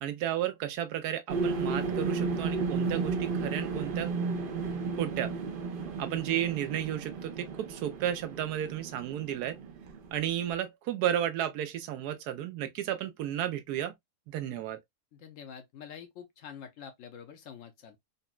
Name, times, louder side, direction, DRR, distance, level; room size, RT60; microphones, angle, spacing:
voice 1, 0.0-4.1 5.0-5.3 6.0-9.6 10.1-13.9 14.3-14.8, right 11 dB, 85° right, 1.2 m, -33 dB
sound 1, 1.3-10.5, right 4 dB, 70° right, 0.5 m, -33 dB
voice 2, 15.1-18.0, left 7 dB, 65° left, 0.9 m, -47 dB
4.0 x 2.1 x 2.3 m
omnidirectional pair, 1.6 m